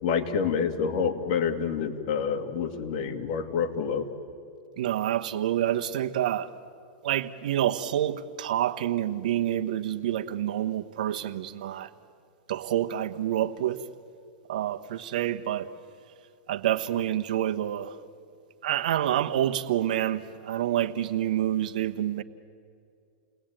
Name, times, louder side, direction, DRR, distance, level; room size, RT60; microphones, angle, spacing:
voice 1, 0.0-4.1, left 6 dB, 55° left, 2.4 m, -28 dB
voice 2, 4.8-6.5 7.0-11.9 12.5-13.8 14.5-15.7 16.5-18.0 18.6-22.2, right 12 dB, 75° right, 1.3 m, -28 dB
30.0 x 20.0 x 9.1 m
supercardioid pair, 140°, 4 cm